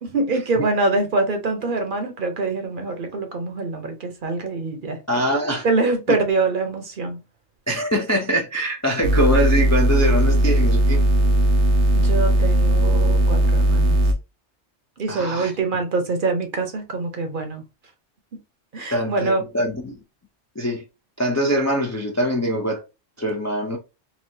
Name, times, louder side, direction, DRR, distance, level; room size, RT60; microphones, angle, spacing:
voice 1, 0.0-5.3 5.6-7.2 11.9-14.0 15.0-17.6 18.3-18.4 18.7-19.4, right 3 dB, 55° right, 0.8 m, -24 dB
voice 2, 5.1-5.7 7.7-11.0 15.1-15.5 18.9-20.0 20.6-20.8 21.2-22.8 23.2-23.8, equal, 25° left, 0.4 m, -23 dB
sound 1, 9.0-14.1, right 1 dB, 80° right, 0.9 m, -17 dB
4.0 x 2.3 x 2.6 m
omnidirectional pair, 1.1 m